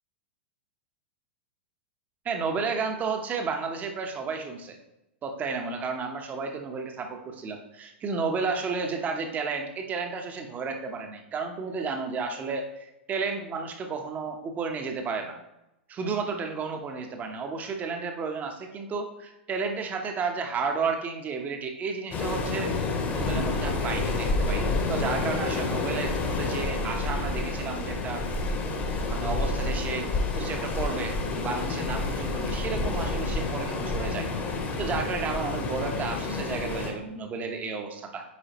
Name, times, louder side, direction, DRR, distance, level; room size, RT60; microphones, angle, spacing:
voice 1, 2.2-4.8 5.2-15.4 15.9-22.7 23.1-28.2 29.1-34.3 34.5-38.2, right 4 dB, 25° right, 4 dB, 1.0 m, -32 dB
Waves surf, 22.1-36.9, left 3 dB, 30° left, 1.2 m, -29 dB
8.5 x 4.8 x 3.0 m, 0.90 s
figure-of-eight pair, 100°, 6 cm